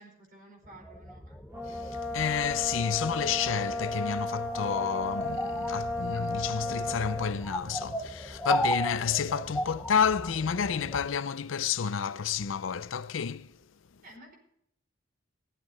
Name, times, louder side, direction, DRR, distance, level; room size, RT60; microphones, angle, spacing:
voice 1, 0.0-1.4 14.0-14.3, right 1 dB, 45° right, 5.0 m, -52 dB
sound 1, 0.7-11.1, equal, 5° left, 0.7 m, -37 dB
Brass instrument, 1.5-7.4, left 2 dB, 15° right, 2.4 m, -34 dB
voice 2, 1.7-13.6, left 7 dB, 85° left, 0.6 m, -30 dB
15.5 x 13.0 x 4.2 m
head